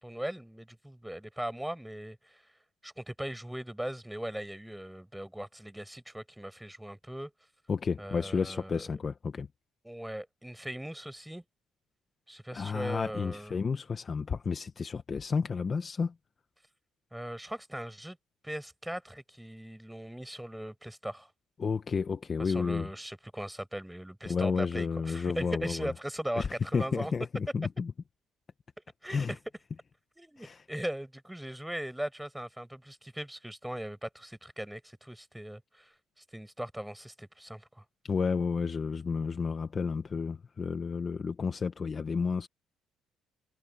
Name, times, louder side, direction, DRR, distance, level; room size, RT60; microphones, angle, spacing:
voice 1, 0.0-2.5 2.8-7.3 8.0-8.9 9.8-11.4 12.3-13.6 17.1-18.2 18.4-21.3 22.4-27.1 29.0-29.4 30.2-35.9 36.3-37.8, right 1 dB, 5° right, 5.4 m, -39 dB
voice 2, 7.7-9.5 12.5-16.1 21.6-22.9 24.3-25.9 26.4-26.5 26.7-27.9 29.1-29.3 30.4-30.6 38.0-42.5, left 5 dB, 30° left, 1.0 m, -31 dB
cardioid pair, 140°, 0 cm